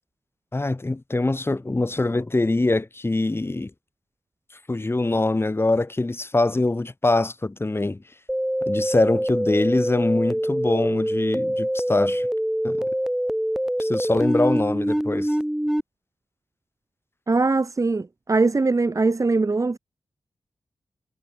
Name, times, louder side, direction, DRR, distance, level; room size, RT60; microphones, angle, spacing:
voice 1, 0.5-3.7 4.7-8.0 8.7-12.3 12.6-12.9 13.8-15.3, left 2 dB, 25° left, 2.9 m, -23 dB
sound 1, 8.3-15.8, equal, 5° right, 6.2 m, -24 dB
voice 2, 17.3-19.8, right 3 dB, 35° right, 1.8 m, -21 dB
cardioid pair, 75°, 9 cm